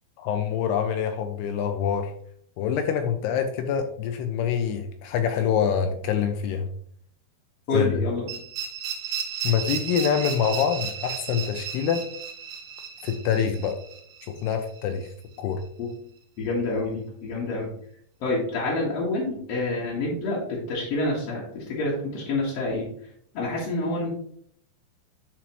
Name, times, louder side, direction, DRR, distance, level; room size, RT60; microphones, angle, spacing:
voice 1, 0.2-2.1 2.6-6.7 7.7-7.9 9.4-12.0 13.0-13.8 14.3-15.1 15.4-15.6, left 8 dB, 80° left, 6 dB, 2.5 m, -25 dB
voice 2, 7.7-8.3 15.8-15.9 16.4-17.7 18.2-22.9 23.3-24.1, left 2 dB, 55° left, -5 dB, 1.9 m, -27 dB
sound 1, 8.3-15.1, right 7 dB, 80° right, 1.6 m, -34 dB
10.0 x 4.6 x 3.1 m, 0.64 s
omnidirectional pair, 5.0 m